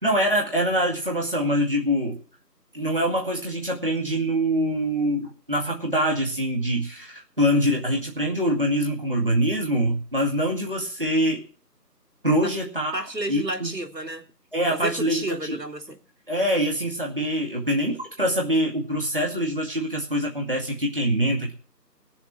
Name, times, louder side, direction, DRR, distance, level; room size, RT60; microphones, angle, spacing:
voice 1, 0.0-2.2 2.7-11.4 12.2-12.9 13.3-13.7 14.5-15.6 16.3-21.5, equal, 35° right, 0 dB, 2.2 m, -24 dB
voice 2, 12.9-14.3 14.7-16.0, right 1 dB, 80° right, 3 dB, 3.3 m, -32 dB
19.0 x 7.1 x 7.4 m, 0.42 s
figure-of-eight pair, 180°, 50 cm